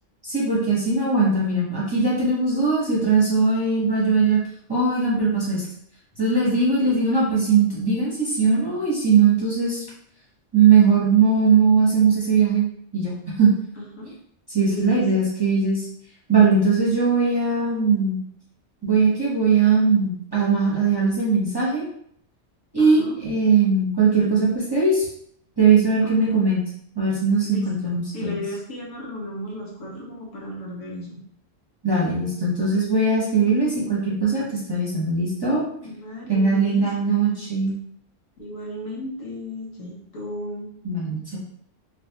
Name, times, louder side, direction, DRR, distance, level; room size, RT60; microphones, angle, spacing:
voice 1, 0.2-4.4 4.7-5.6 6.2-9.8 10.5-12.7 12.9-13.5 14.5-15.9 16.3-18.2 18.8-21.9 22.7-25.1 25.6-26.6 27.0-28.4 31.8-35.6 36.3-37.7 40.8-41.4, right 4 dB, 25° right, -6 dB, 0.7 m, -20 dB
voice 2, 13.8-14.1 14.6-15.1 22.8-23.2 26.0-26.4 27.5-31.2 35.8-37.5 38.4-40.7, left 1 dB, 90° left, -2 dB, 1.3 m, -35 dB
3.3 x 2.6 x 2.8 m, 0.67 s
omnidirectional pair, 1.3 m